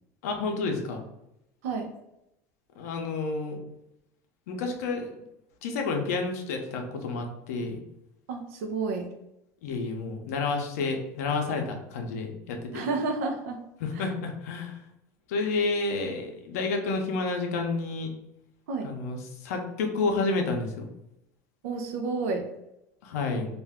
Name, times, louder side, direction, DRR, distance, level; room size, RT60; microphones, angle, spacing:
voice 1, 0.2-1.0 2.8-3.6 4.5-5.2 5.6-7.8 9.6-12.8 13.8-14.8 15.3-18.1 18.8-20.8 23.0-23.5, left 3 dB, 85° left, 3 dB, 0.6 m, -30 dB
voice 2, 8.3-9.1 12.7-13.6 14.0-14.1 18.7-18.9 21.6-22.5, right 4 dB, 80° right, 4 dB, 0.6 m, -30 dB
2.5 x 2.2 x 3.5 m, 0.85 s
supercardioid pair, 115°, 8 cm